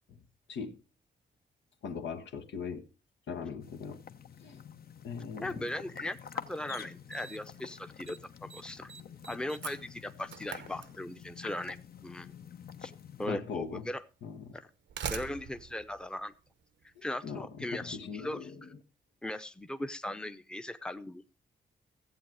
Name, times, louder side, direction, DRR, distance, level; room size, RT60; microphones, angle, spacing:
voice 1, 0.5-0.8 1.8-2.8 3.3-4.0 4.4-4.6 5.0-5.7 13.3-13.9 14.2-14.6 17.0-18.8, left 6 dB, 90° left, 1.3 m, -40 dB
sound 1, 3.6-13.3, left 7 dB, 55° left, 0.9 m, -48 dB
voice 2, 5.4-8.9 9.3-12.3 12.8-12.9 13.2-14.0 14.5-14.7 15.1-16.3 17.0-18.5 19.2-21.2, left 1 dB, 5° left, 0.7 m, -38 dB
Slam, 6.3-6.4 7.1-7.6 7.8-8.2 8.5-11.4 12.5-12.6 13.5-13.6 14.6-16.9, right 8 dB, 80° right, 0.9 m, -43 dB
14.5 x 8.1 x 4.7 m
cardioid pair, 100°, 18 cm